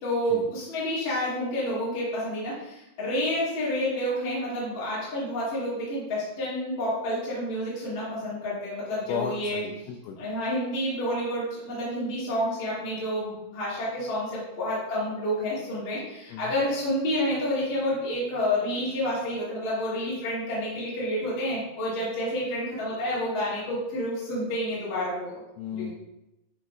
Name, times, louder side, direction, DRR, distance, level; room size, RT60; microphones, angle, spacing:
voice 1, 0.0-9.6 10.2-25.4 25.7-25.9, equal, 50° left, -9 dB, 3.2 m, -29 dB
voice 2, 9.1-10.2 16.3-16.4 25.6-25.9, left 6 dB, 85° left, 2 dB, 2.2 m, -33 dB
10.0 x 4.1 x 2.3 m, 0.90 s
omnidirectional pair, 4.8 m